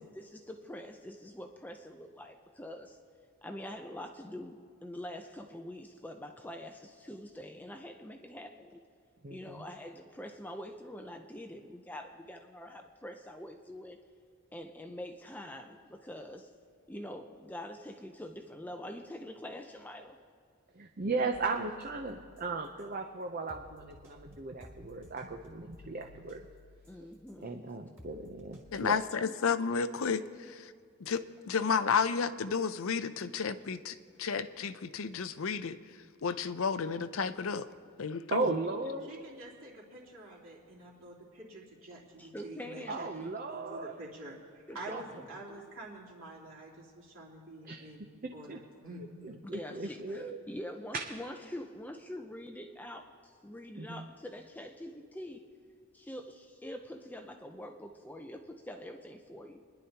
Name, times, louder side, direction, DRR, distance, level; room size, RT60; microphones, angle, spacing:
voice 1, 0.1-3.0 3.4-8.8 9.3-14.0 14.5-16.6 16.9-20.2 26.9-27.5 29.2-29.3 42.2-43.1 44.7-45.0 49.5-55.5 55.9-59.6, left 1 dB, 10° left, 4 dB, 0.5 m, -45 dB
voice 2, 9.2-9.6 20.7-26.5 27.0-27.1 27.4-29.0 38.3-39.1 42.9-43.9 44.9-45.0 47.6-47.9 48.2-48.6 49.2-50.4 50.9-51.0 53.8-54.1, right 3 dB, 40° right, 3 dB, 0.6 m, -36 dB
sound 1, 21.3-23.0 23.5-27.5 28.0-28.9, left 1 dB, 10° right, 2.1 m, -56 dB
voice 3, 28.7-30.7 31.0-35.8 36.2-37.7 38.0-38.5, left 5 dB, 65° left, 12 dB, 0.5 m, -32 dB
voice 4, 39.0-43.1 43.5-49.4, right 1 dB, 65° right, -4 dB, 3.1 m, -48 dB
29.5 x 11.0 x 2.9 m, 2.2 s
head